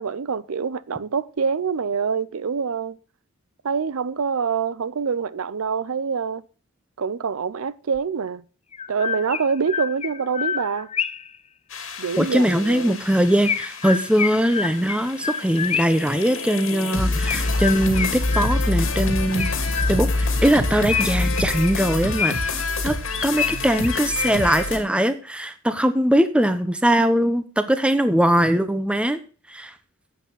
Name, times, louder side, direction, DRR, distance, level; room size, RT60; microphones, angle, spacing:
voice 1, 0.0-3.0 3.6-6.4 7.0-8.4 8.9-10.9 12.0-13.0, right 6 dB, 85° right, 0.5 m, -25 dB
Chirp tweet, 7.9-8.0 8.7-11.4 13.4-16.1 17.3-18.9 19.4-20.3 20.9-22.6 23.1-24.6, left 7 dB, 30° left, 0.5 m, -28 dB
sound 1, 11.7-24.8, left 2 dB, 70° left, 2.4 m, -27 dB
voice 2, 12.2-19.5 19.9-22.3 22.8-22.9 23.2-29.2 29.5-29.7, equal, 5° right, 0.9 m, -21 dB
sound 2, 17.2-21.6, left 2 dB, 85° left, 1.9 m, -34 dB
10.5 x 8.3 x 4.0 m
head